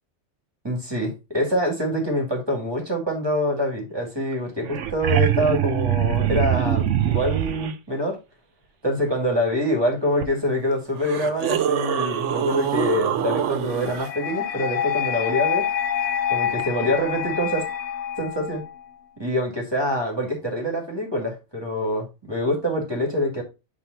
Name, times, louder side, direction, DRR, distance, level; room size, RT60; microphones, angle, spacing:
voice 1, 0.6-8.2 8.8-15.6 16.3-17.6 18.2-18.6 19.2-23.4, equal, 20° right, 1 dB, 2.2 m, -25 dB
sound 1, 4.3-4.4 4.6-7.7 10.2-10.3 11.0-14.1 16.6-16.7, right 11 dB, 80° right, 1.0 m, -24 dB
sound 2, 13.8-18.8, left 9 dB, 70° left, 0.9 m, -27 dB
8.9 x 3.6 x 3.9 m, 0.27 s
omnidirectional pair, 1.2 m